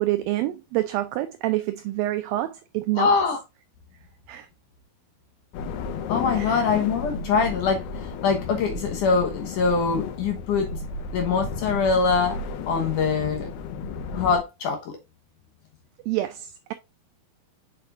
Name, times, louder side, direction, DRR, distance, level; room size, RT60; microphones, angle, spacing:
voice 1, 0.0-3.1 4.3-4.5 6.3-6.6 16.1-16.7, right 16 dB, 85° right, 2.0 m, -27 dB
voice 2, 3.0-3.4 6.1-7.8 8.2-10.7 11.1-12.4 12.7-13.5 14.1-15.0, left 5 dB, 65° left, 2.2 m, -23 dB
sound 1, 5.5-14.4, left 4 dB, 85° left, 2.8 m, -33 dB
6.6 x 6.5 x 2.5 m
omnidirectional pair, 4.6 m